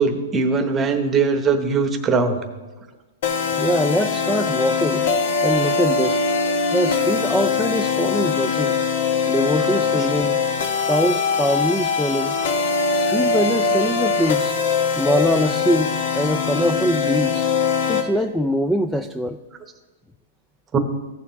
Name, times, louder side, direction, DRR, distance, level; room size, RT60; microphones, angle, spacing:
voice 1, 0.0-2.4 9.9-10.1 20.7-20.8, right 4 dB, 15° right, 6 dB, 1.0 m, -20 dB
sound 1, 3.2-18.1, left 5 dB, 60° left, 1.0 m, -22 dB
voice 2, 3.6-5.1 5.4-6.2 6.7-8.8 9.3-10.4 10.9-12.4 13.0-14.6 15.0-17.5 17.9-19.4, equal, 5° left, 7 dB, 0.3 m, -22 dB
15.5 x 7.0 x 3.2 m, 1.2 s
hypercardioid pair, 145°, 0 cm